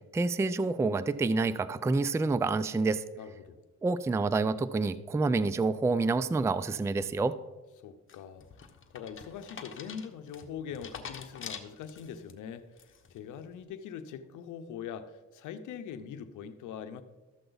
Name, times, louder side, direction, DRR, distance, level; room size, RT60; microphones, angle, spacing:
voice 1, 0.1-3.0 3.8-7.3, right 3 dB, 10° right, 14 dB, 0.4 m, -28 dB
voice 2, 3.2-3.6 7.8-8.5 8.9-17.0, left 7 dB, 85° left, 10 dB, 0.8 m, -42 dB
sound 1, 8.1-12.3 12.8-13.2, left 6 dB, 40° left, 1.2 m, -45 dB
13.0 x 7.9 x 3.9 m, 1.2 s
cardioid pair, 90°, 30 cm